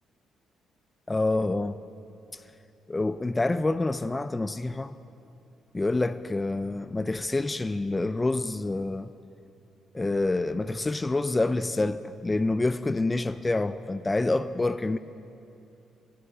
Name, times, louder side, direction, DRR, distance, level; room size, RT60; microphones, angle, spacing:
voice 1, 1.1-1.8 2.3-2.4 2.9-5.0 5.7-9.1 9.9-15.0, left 2 dB, 20° left, 0.4 m, -27 dB
20.5 x 14.0 x 5.0 m
cardioid pair, 90°, 0 cm